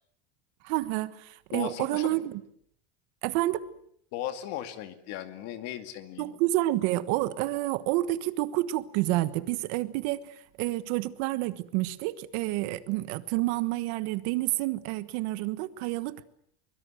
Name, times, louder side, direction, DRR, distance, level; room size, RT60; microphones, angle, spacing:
voice 1, 0.6-2.3 3.2-3.7 6.2-10.3 10.6-16.2, right 17 dB, 60° right, 1.4 m, -29 dB
voice 2, 1.5-2.2 4.1-6.4, left 12 dB, 50° left, 2.3 m, -37 dB
24.0 x 22.5 x 7.9 m
cardioid pair, 170°, 33 cm